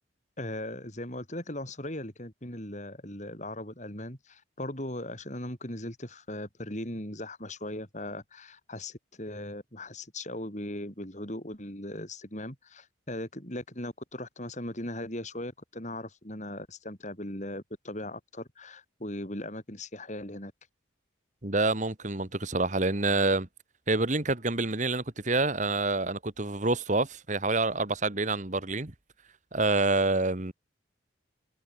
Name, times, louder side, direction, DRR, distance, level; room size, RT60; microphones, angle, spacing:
voice 1, 0.4-20.5, left 1 dB, 40° left, 5.3 m, -38 dB
voice 2, 21.4-23.5 23.9-28.9 29.5-30.5, right 2 dB, 40° right, 1.7 m, -27 dB
head